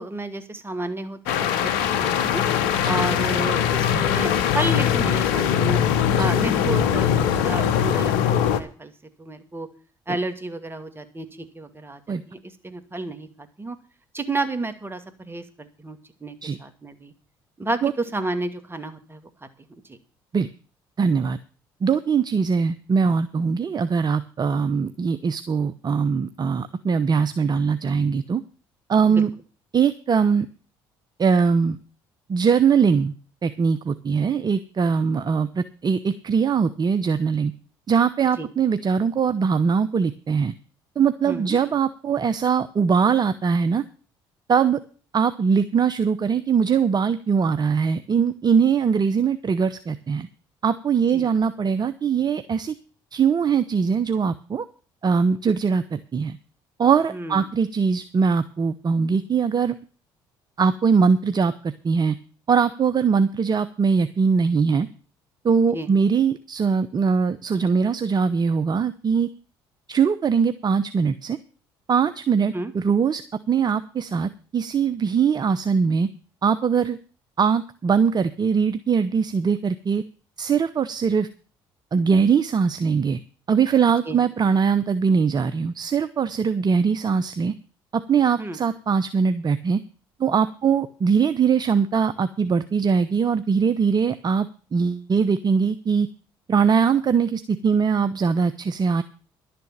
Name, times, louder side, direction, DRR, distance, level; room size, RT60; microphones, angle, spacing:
voice 1, 0.0-2.4 2.8-5.8 6.2-8.9 9.2-9.7 10.1-13.8 14.1-17.1 17.6-17.8 18.1-19.3 19.9-20.0 29.1-29.2 38.4-38.5 41.3-41.6 51.1-51.3 57.1-57.4 65.7-65.9 72.5-72.7 84.0-84.2 88.4-88.6, right 2 dB, 20° right, 9 dB, 2.4 m, -31 dB
sound 1, 1.3-8.6, left 9 dB, 80° left, 1.1 m, -21 dB
voice 2, 21.0-21.4 21.8-28.4 28.9-29.3 29.7-30.5 31.2-31.8 32.3-33.1 33.4-37.5 37.9-40.5 41.0-43.8 44.5-44.8 45.1-50.3 50.6-52.7 53.1-54.6 55.0-56.4 56.8-59.8 60.6-62.1 62.5-64.9 65.4-69.3 69.9-71.4 71.9-73.2 73.5-76.1 76.4-77.0 77.4-80.0 80.4-81.3 81.9-83.2 83.5-87.5 87.9-89.8 90.2-96.1 96.5-99.0, right 6 dB, 35° right, 12 dB, 0.9 m, -21 dB
11.5 x 7.0 x 8.7 m, 0.38 s
hypercardioid pair, 60°, 11 cm